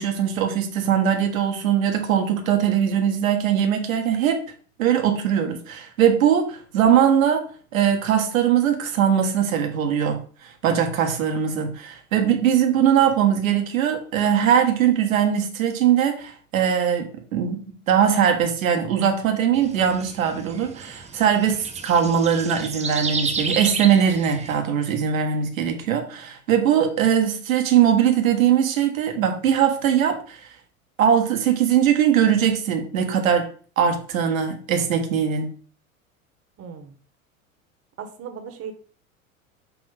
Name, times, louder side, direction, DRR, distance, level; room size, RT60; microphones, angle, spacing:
voice 1, 0.0-4.4 4.8-7.4 7.7-17.1 17.3-30.4 31.0-33.5 33.8-35.5, right 8 dB, 75° right, 1.4 m, -21 dB
sound 1, 19.5-24.6, right 5 dB, 15° right, 0.9 m, -32 dB
voice 2, 36.6-36.9 38.0-38.7, right 7 dB, 35° right, 1.3 m, -37 dB
6.9 x 3.1 x 5.0 m
hypercardioid pair, 90°, 41 cm